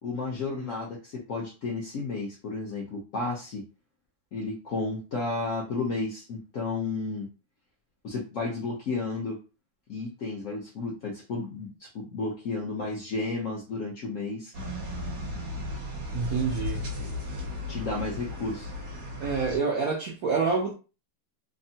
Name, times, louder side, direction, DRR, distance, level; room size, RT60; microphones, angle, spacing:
voice 1, 0.0-3.7 4.3-7.3 8.0-9.4 9.9-14.5 17.7-18.7, left 3 dB, 70° left, 0.7 m, -32 dB
sound 1, 14.5-19.6, left 2 dB, 50° right, 1.3 m, -35 dB
voice 2, 16.1-16.9 19.2-20.7, right 5 dB, 75° right, 0.8 m, -27 dB
3.5 x 2.1 x 2.7 m
omnidirectional pair, 2.1 m